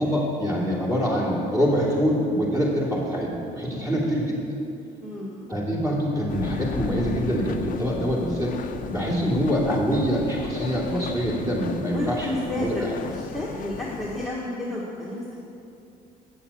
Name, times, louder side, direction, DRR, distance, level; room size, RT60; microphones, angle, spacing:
voice 1, 0.0-4.4 5.5-8.5 8.9-12.3 12.6-12.9, equal, 20° right, -4 dB, 2.8 m, -25 dB
voice 2, 3.6-4.0 5.0-5.5 11.9-15.2, left 1 dB, ahead, -7 dB, 1.5 m, -31 dB
sound 1, 6.3-14.3, left 7 dB, 50° left, 0.6 m, -35 dB
8.7 x 7.0 x 7.2 m, 2.6 s
cardioid pair, 110°, 17 cm